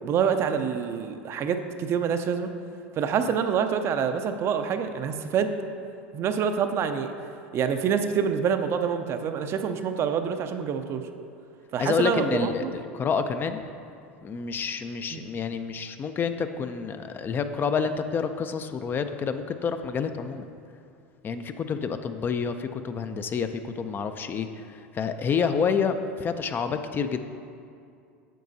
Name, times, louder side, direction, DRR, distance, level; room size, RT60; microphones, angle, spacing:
voice 1, 0.0-2.5 3.0-5.5 6.1-7.1 7.5-11.0 11.7-12.7 15.1-15.2, right 7 dB, 45° right, 8 dB, 0.5 m, -26 dB
voice 2, 11.8-13.6 14.2-20.5 21.2-27.2, left 6 dB, 30° left, 9 dB, 0.5 m, -28 dB
9.1 x 7.4 x 2.7 m, 2.4 s
hypercardioid pair, 85°, 6 cm